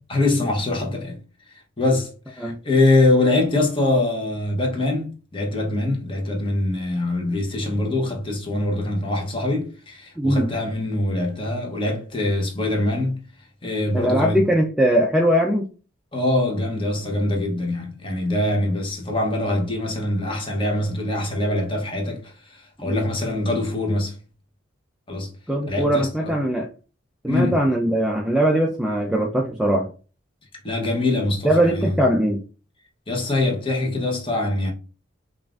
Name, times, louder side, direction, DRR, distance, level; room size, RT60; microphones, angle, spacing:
voice 1, 0.1-1.2 1.8-13.2 13.6-14.4 16.1-24.2 25.1-25.3 25.7-26.3 27.3-27.6 30.6-32.0 33.1-34.7, left 2 dB, 25° left, 0.9 m, -23 dB
voice 2, 10.2-10.5 13.9-15.7 22.8-23.0 25.5-26.7 27.2-29.9 31.4-32.4, right 1 dB, 5° right, 0.4 m, -20 dB
5.3 x 2.5 x 2.4 m
head